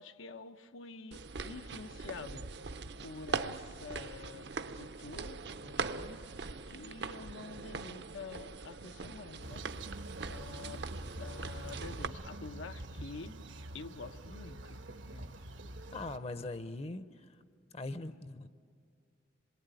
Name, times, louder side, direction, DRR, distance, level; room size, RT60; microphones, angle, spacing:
voice 1, 0.0-4.5 4.8-6.2 6.7-9.9 10.2-10.9 11.2-13.4 13.7-14.8 15.1-15.3, left 4 dB, 90° left, 8 dB, 0.9 m, -48 dB
sound 1, 1.1-12.1, right 4 dB, 60° right, 0.7 m, -41 dB
sound 2, 9.4-16.2, right 1 dB, 80° right, 1.3 m, -46 dB
voice 2, 15.9-17.4 17.7-18.5, left 2 dB, 30° left, 12 dB, 0.6 m, -41 dB
26.5 x 22.0 x 9.1 m, 2.1 s
head